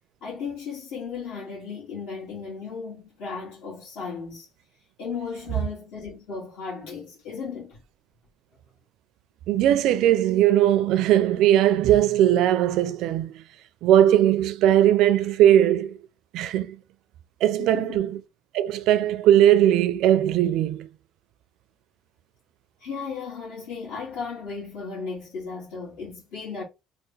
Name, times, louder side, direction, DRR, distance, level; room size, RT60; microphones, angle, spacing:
voice 1, 0.2-4.5 5.0-7.8 17.6-18.0 22.8-26.6, left 5 dB, 70° left, 2.0 m, -35 dB
voice 2, 9.5-13.4 13.8-16.0 16.3-16.8 17.4-18.2 18.5-20.9, right 11 dB, 65° right, 0.4 m, -19 dB
3.4 x 2.6 x 3.2 m
cardioid pair, 160°, 0 cm